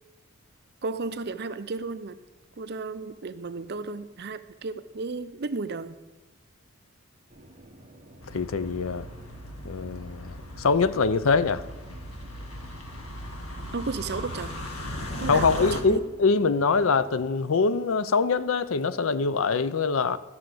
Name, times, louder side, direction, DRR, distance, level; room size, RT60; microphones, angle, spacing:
voice 1, 0.8-2.2 2.6-6.0 13.7-14.6 15.2-16.0, right 3 dB, 50° right, 0.6 m, -33 dB
sound 1, 7.3-17.4, right 1 dB, 30° right, 1.3 m, -51 dB
sound 2, 8.2-15.8, left 1 dB, 85° left, 1.6 m, -37 dB
voice 2, 8.3-9.1 9.6-11.6 15.3-20.2, left 4 dB, 70° left, 0.6 m, -24 dB
14.0 x 5.9 x 7.7 m
head